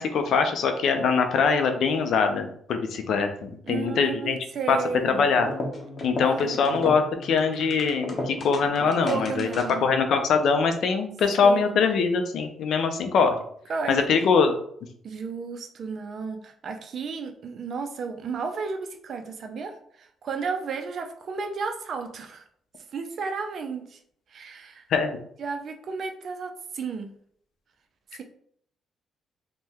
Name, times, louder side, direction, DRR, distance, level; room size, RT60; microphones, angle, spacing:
voice 1, 0.0-4.4 4.7-4.8 5.0-5.5 6.0-9.5 9.8-13.3 13.9-14.5 24.9-25.2, left 5 dB, 70° left, 6 dB, 0.4 m, -23 dB
voice 2, 3.7-5.2 6.2-6.6 9.0-9.9 11.4-11.8 13.7-14.1 15.0-22.5 22.9-24.0 24.3-24.8 25.4-27.1, right 5 dB, 55° right, 6 dB, 0.4 m, -33 dB
sound 1, 5.3-9.9, left 1 dB, 40° left, 0.7 m, -35 dB
2.7 x 2.1 x 3.4 m, 0.65 s
cardioid pair, 90°, 0 cm